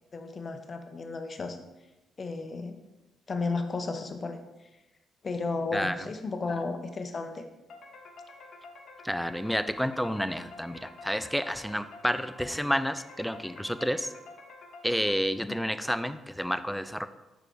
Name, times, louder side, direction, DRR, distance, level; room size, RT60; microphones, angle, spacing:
voice 1, 0.0-1.6 2.2-2.8 3.3-4.4 5.2-7.4 15.4-15.6, left 3 dB, 35° left, 7 dB, 0.7 m, -33 dB
sound 1, 7.7-15.6, left 3 dB, 65° left, 0.9 m, -49 dB
voice 2, 9.0-14.1 14.8-17.1, equal, ahead, 11 dB, 0.4 m, -30 dB
4.9 x 4.8 x 4.6 m, 1.0 s
cardioid pair, 90°, 0 cm